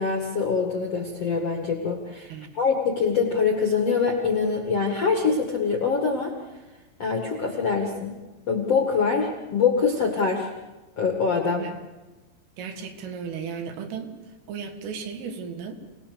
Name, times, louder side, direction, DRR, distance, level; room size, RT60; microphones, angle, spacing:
voice 1, 0.0-6.3 7.0-8.2 8.5-10.5 11.0-11.7, left 5 dB, 55° left, 1 dB, 1.8 m, -24 dB
voice 2, 12.6-14.2 14.5-15.8, right 6 dB, 75° right, 5 dB, 4.5 m, -35 dB
28.0 x 19.0 x 6.9 m, 1.2 s
omnidirectional pair, 6.0 m